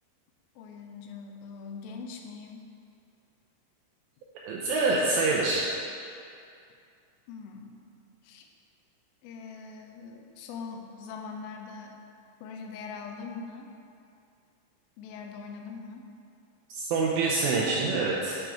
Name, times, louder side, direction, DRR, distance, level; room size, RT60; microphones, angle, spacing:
voice 1, 0.6-2.7 7.3-7.8 8.2-8.5 9.2-12.0 12.4-13.7 15.0-16.1, left 5 dB, 90° left, 3 dB, 3.3 m, -42 dB
voice 2, 4.5-5.7 16.7-18.4, right 3 dB, 90° right, -5 dB, 2.5 m, -26 dB
9.1 x 4.9 x 4.7 m, 2.5 s
omnidirectional pair, 5.7 m